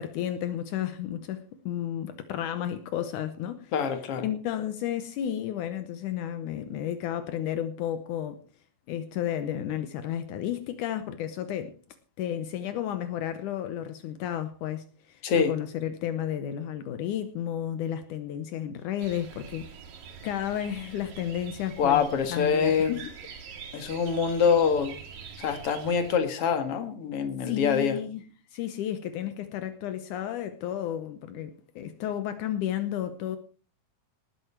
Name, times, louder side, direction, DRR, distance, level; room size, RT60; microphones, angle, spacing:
voice 1, 0.0-3.7 4.2-8.4 8.9-11.7 12.2-19.7 20.2-22.0 22.3-23.0 27.4-28.2 28.5-33.4, left 10 dB, 80° left, 2.3 m, -32 dB
voice 2, 3.7-4.3 15.2-15.5 21.8-23.0 23.7-24.9 25.4-28.0, left 6 dB, 50° left, 2.5 m, -25 dB
sound 1, 19.0-26.2, right 6 dB, 85° right, 3.9 m, -45 dB
19.0 x 9.5 x 4.5 m
omnidirectional pair, 3.7 m